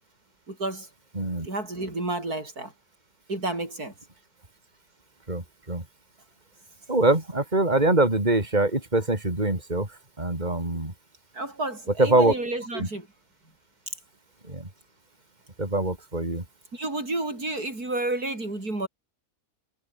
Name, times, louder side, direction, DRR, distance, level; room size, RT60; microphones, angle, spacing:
voice 1, 0.5-0.9 1.4-2.7 3.3-3.9 11.3-13.1 16.7-18.9, right 2 dB, 85° right, 7.2 m, -31 dB
voice 2, 6.9-9.9 10.2-10.9 12.0-12.3 12.7-12.9 14.5-14.6 15.6-16.4, right 2 dB, 30° right, 4.8 m, -23 dB
omnidirectional pair, 1.6 m